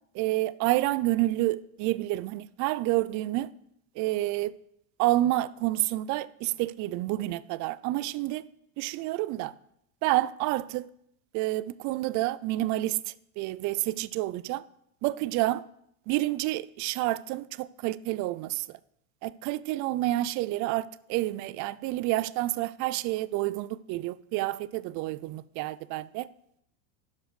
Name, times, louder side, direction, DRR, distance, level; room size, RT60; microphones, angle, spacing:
voice 1, 0.1-3.5 4.0-4.5 5.0-8.4 8.8-9.5 10.0-10.9 11.3-14.6 15.0-15.6 16.1-18.8 19.2-26.3, right 17 dB, 45° right, 0.4 m, -29 dB
12.0 x 5.0 x 4.8 m
supercardioid pair, 120°, 41 cm